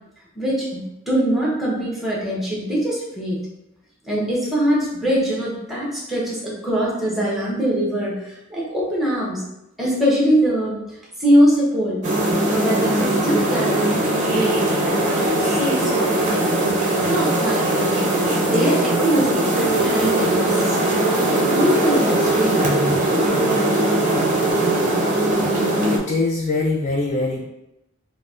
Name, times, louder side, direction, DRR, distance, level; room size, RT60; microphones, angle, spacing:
voice 1, 0.3-3.4 4.0-9.4 9.8-12.0 12.5-18.1 18.4-20.8 21.5-22.6, equal, ahead, -6 dB, 0.8 m, -22 dB
sound 1, 12.0-26.0, right 1 dB, 35° right, 0.6 m, -20 dB
voice 2, 25.9-27.4, left 3 dB, 35° left, -2 dB, 0.3 m, -23 dB
3.9 x 2.0 x 2.4 m, 0.88 s
head